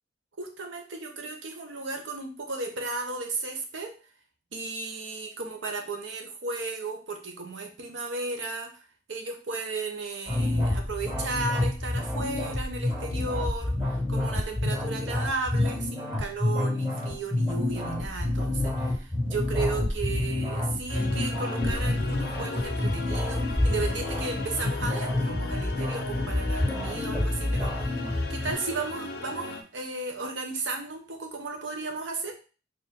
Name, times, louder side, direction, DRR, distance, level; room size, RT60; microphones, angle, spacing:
voice 1, 0.4-4.0 4.5-8.8 9.1-32.3, right 3 dB, 80° right, 4 dB, 0.8 m, -35 dB
sound 1, 10.3-28.5, left 1 dB, 5° right, 1.9 m, -28 dB
sound 2, 20.9-29.6, left 3 dB, 55° left, 0.6 m, -37 dB
4.6 x 2.5 x 3.6 m, 0.36 s
head